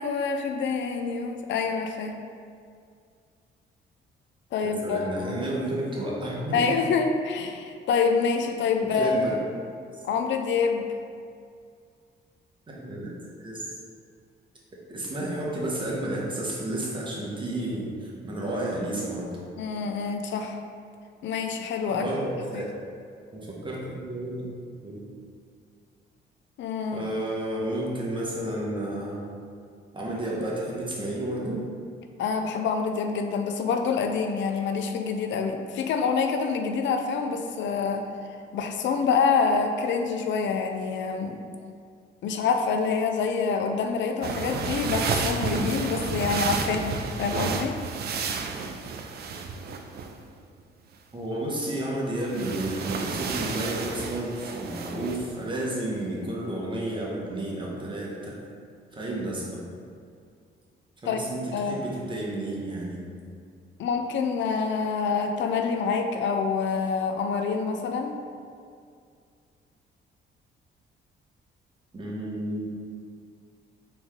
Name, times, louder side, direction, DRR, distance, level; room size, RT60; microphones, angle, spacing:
voice 1, 0.0-2.2 4.5-5.4 6.5-9.2 10.0-10.9 19.6-20.6 21.2-22.1 22.5-22.6 26.6-27.1 32.2-38.1 38.5-41.4 42.2-47.8 61.1-61.2 61.5-61.8 63.8-68.2, left 5 dB, 70° left, 5 dB, 0.4 m, -26 dB
voice 2, 4.6-6.7 8.9-9.3 9.9-10.0 12.7-13.7 14.7-19.4 21.9-22.7 23.3-24.5 24.8-25.1 26.9-29.3 29.9-31.7 51.1-58.4 58.9-59.7 61.0-63.0 71.9-72.7, right 1 dB, 25° right, -4 dB, 1.1 m, -31 dB
sound 1, 44.2-50.2 52.3-55.3, right 4 dB, 55° right, 0.4 m, -31 dB
4.0 x 3.2 x 3.6 m, 2.3 s
cardioid pair, 90°, 20 cm